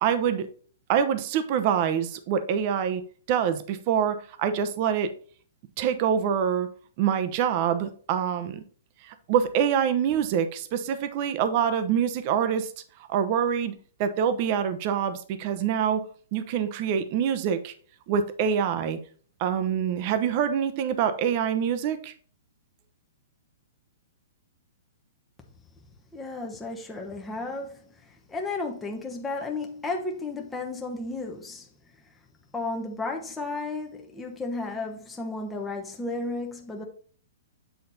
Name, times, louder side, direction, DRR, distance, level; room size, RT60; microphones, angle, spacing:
voice 1, 0.0-0.5 0.9-3.0 3.3-5.1 5.8-6.7 7.0-8.6 9.0-12.7 13.1-13.7 14.0-16.0 16.3-17.7 18.1-19.0 19.4-22.1, right 8 dB, 40° right, 0.8 m, -25 dB
voice 2, 26.1-31.7 32.5-36.8, left 3 dB, 10° left, 0.9 m, -33 dB
8.0 x 4.1 x 4.0 m
hypercardioid pair, 155°, 0 cm